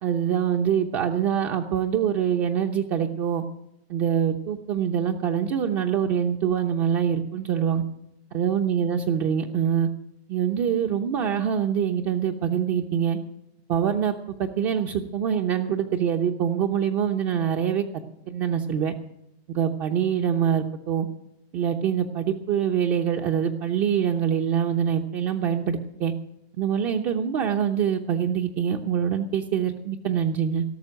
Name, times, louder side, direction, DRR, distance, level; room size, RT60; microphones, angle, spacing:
voice 1, 0.0-3.4 3.9-7.8 8.3-9.9 10.3-13.2 13.7-17.8 18.3-18.9 19.5-21.1 21.5-26.1 26.6-30.6, right 8 dB, 30° right, 3 dB, 0.9 m, -24 dB
17.5 x 6.8 x 9.0 m, 0.83 s
hypercardioid pair, 150°, 32 cm